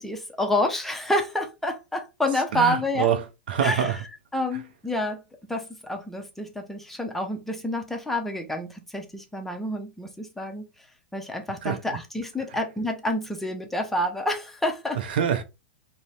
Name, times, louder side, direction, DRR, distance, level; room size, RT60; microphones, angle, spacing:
voice 1, 0.0-3.1 3.6-4.0 4.3-5.2 5.5-10.6 11.1-15.0, left 1 dB, 5° left, 0.5 m, -28 dB
voice 2, 2.5-4.0 11.6-11.8 15.1-15.4, right 8 dB, 55° right, 0.5 m, -25 dB
3.9 x 2.0 x 2.3 m
figure-of-eight pair, 100°, 6 cm